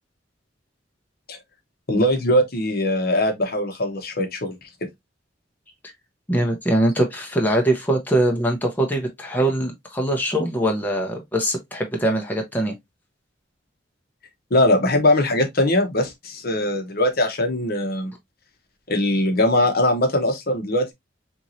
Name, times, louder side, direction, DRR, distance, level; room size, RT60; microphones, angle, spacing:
voice 1, 1.9-4.6 14.5-18.1 18.9-20.9, left 1 dB, 55° left, 0.9 m, -21 dB
voice 2, 6.3-12.7, right 1 dB, 10° left, 0.8 m, -22 dB
4.5 x 3.0 x 2.6 m
head